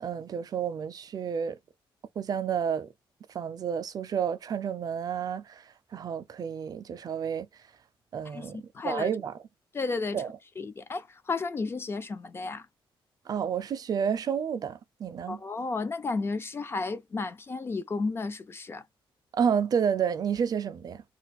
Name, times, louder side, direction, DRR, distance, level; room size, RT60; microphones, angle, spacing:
voice 1, 0.0-1.6 2.2-2.9 3.3-7.5 8.1-9.3 10.1-10.3 13.3-15.4 19.3-21.0, right 7 dB, 45° right, 0.4 m, -30 dB
voice 2, 8.2-9.2 9.7-10.2 10.6-12.7 15.3-18.8, left 3 dB, 25° left, 0.3 m, -33 dB
2.4 x 2.3 x 4.0 m
wide cardioid pair, 155°, 9 cm